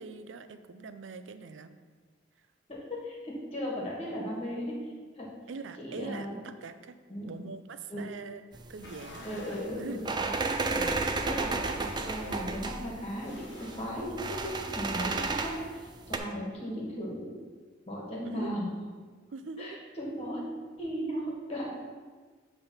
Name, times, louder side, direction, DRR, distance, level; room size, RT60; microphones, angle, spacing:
voice 1, 0.0-1.8 2.4-2.5 5.5-7.0 7.3-8.4 8.7-10.0 18.2-18.6 19.3-19.8, right 4 dB, 75° right, 10 dB, 0.5 m, -43 dB
voice 2, 2.7-5.3 5.8-6.3 7.1-7.3 7.9-8.1 9.2-10.3 10.7-17.3 17.9-18.7 19.6-20.4 20.8-21.7, equal, 30° left, -3 dB, 1.8 m, -37 dB
sound 1, 8.5-16.2, right 3 dB, 25° right, 0.4 m, -33 dB
sound 2, 8.7-13.9, left 2 dB, 65° left, 1.1 m, -51 dB
8.1 x 3.5 x 5.5 m, 1.5 s
head